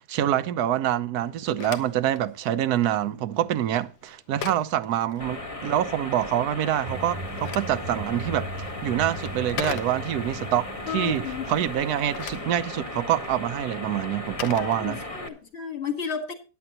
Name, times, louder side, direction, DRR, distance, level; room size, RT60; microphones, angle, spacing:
voice 1, 0.0-10.7 10.9-11.2 11.5-15.0, right 11 dB, 75° right, 1.2 m, -26 dB
Telephone, 1.2-5.8 7.0-10.4 11.8-15.4, left 9 dB, 80° left, 1.4 m, -41 dB
sound 1, 5.2-15.3, left 2 dB, 25° left, 1.2 m, -36 dB
sound 2, 6.9-12.4, right 1 dB, 25° right, 1.1 m, -39 dB
voice 2, 10.9-11.5 14.6-16.3, left 7 dB, 40° left, 1.9 m, -32 dB
15.5 x 10.5 x 2.9 m
omnidirectional pair, 1.7 m